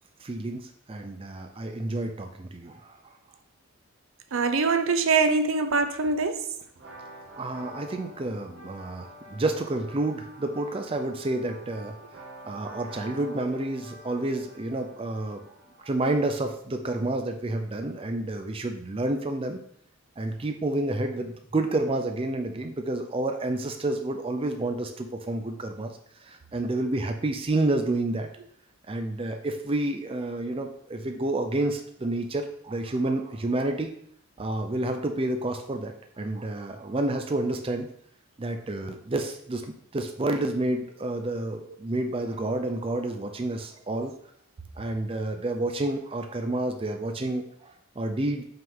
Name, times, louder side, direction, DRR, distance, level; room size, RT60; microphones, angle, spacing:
voice 1, 0.2-3.0 7.4-12.0 12.4-15.4 15.8-19.6 20.2-25.9 26.2-28.3 28.9-34.0 34.4-37.9 38.4-39.7 39.9-44.1 44.8-48.4, right 2 dB, 25° right, 5 dB, 0.5 m, -29 dB
voice 2, 4.3-6.5, right 4 dB, 70° right, 9 dB, 0.6 m, -23 dB
sound 1, 6.8-16.4, right 1 dB, 50° right, 1.7 m, -47 dB
5.6 x 3.7 x 5.4 m, 0.65 s
head